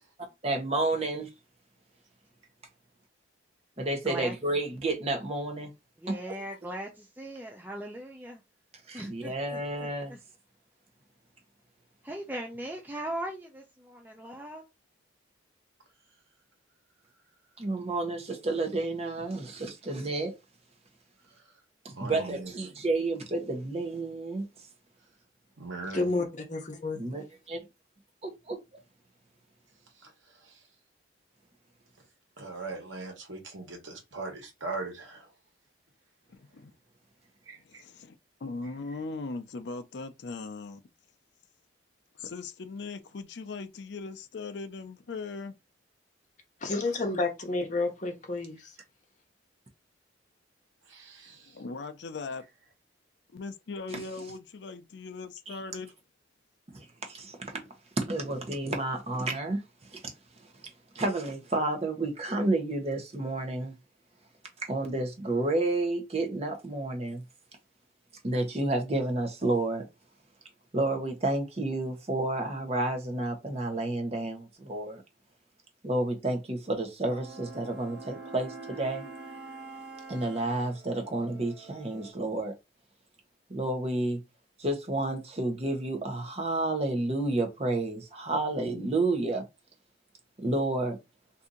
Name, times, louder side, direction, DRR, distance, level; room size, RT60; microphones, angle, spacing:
voice 1, 0.4-1.3 3.8-5.7 6.1-6.3 8.9-10.2 17.6-20.3 22.0-24.5 27.0-27.6 28.2-28.6 56.7-57.5 58.0-59.6 59.9-60.0 60.9-63.7 64.6-67.2 68.2-69.9 70.7-75.0 75.8-79.1 80.1-82.5 83.5-84.2 84.6-89.4 90.4-91.0, right 2 dB, 30° right, 0.8 m, -30 dB
voice 2, 6.0-8.4 8.9-10.2 12.0-14.6, right 1 dB, 10° right, 0.4 m, -39 dB
voice 3, 21.9-22.5 25.6-26.1 30.0-30.6 32.4-35.3 37.5-37.8 38.6-38.7 50.9-51.6, right 3 dB, 75° right, 1.2 m, -40 dB
voice 4, 25.9-27.0 46.6-48.7, left 2 dB, 40° left, 0.8 m, -30 dB
voice 5, 36.3-36.7 37.5-38.2 38.4-40.8 42.1-45.5 51.3-52.4 53.3-55.9, left 3 dB, 60° left, 0.4 m, -39 dB
sound 1, 77.1-82.1, right 3 dB, 55° right, 1.2 m, -45 dB
2.7 x 2.6 x 3.7 m
head